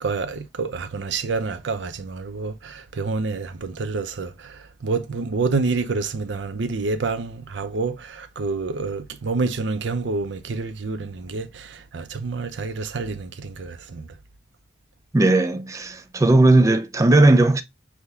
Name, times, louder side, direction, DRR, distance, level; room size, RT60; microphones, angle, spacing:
voice 1, 0.0-14.1, right 4 dB, 75° right, 0.5 m, -28 dB
voice 2, 15.1-17.6, right 2 dB, 15° right, 0.4 m, -17 dB
5.8 x 2.2 x 3.3 m
head